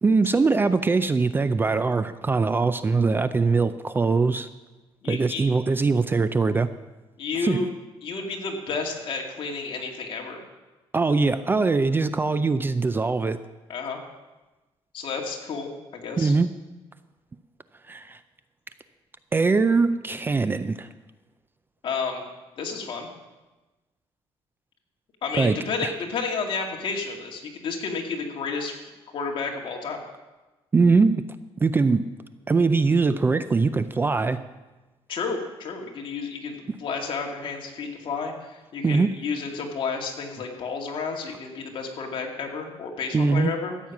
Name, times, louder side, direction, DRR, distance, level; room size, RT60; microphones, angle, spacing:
voice 1, 0.0-4.5 5.1-6.7 7.4-7.7 10.9-13.4 16.2-16.5 17.9-18.2 19.3-20.9 25.4-25.9 30.7-31.4 31.6-32.1 32.5-34.4 38.8-39.1 43.1-43.5, right 4 dB, 20° right, 12 dB, 0.4 m, -22 dB
voice 2, 5.0-5.4 7.2-7.7 8.0-10.4 13.7-14.0 14.9-16.3 21.8-22.2 22.6-23.1 25.2-28.8 29.1-30.0 35.1-43.7, left 4 dB, 50° left, 1 dB, 2.2 m, -31 dB
14.0 x 8.9 x 5.9 m, 1.1 s
cardioid pair, 135°, 11 cm